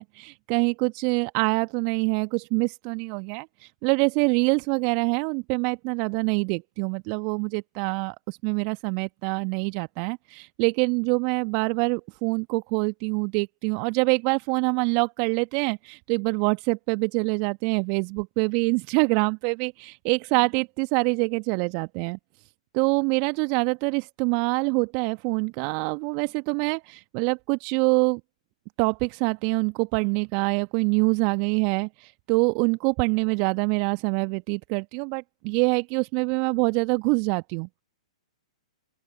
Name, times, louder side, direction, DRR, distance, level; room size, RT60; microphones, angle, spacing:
voice 1, 0.0-22.2 22.7-28.2 28.8-37.7, right 35 dB, 35° right, 1.3 m, -25 dB
open air
figure-of-eight pair, 110°, 4 cm